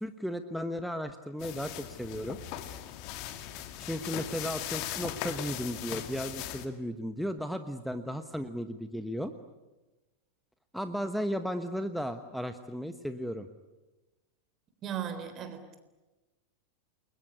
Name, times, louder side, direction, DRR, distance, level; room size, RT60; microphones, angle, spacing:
voice 1, 0.0-2.4 3.8-9.3 10.7-13.5, equal, ahead, 9 dB, 1.2 m, -35 dB
sound 1, 1.4-6.7, left 12 dB, 45° left, 2.1 m, -39 dB
voice 2, 14.8-15.8, right 9 dB, 30° right, 9 dB, 3.7 m, -37 dB
29.0 x 21.5 x 9.6 m, 1.1 s
figure-of-eight pair, 90°, 0 cm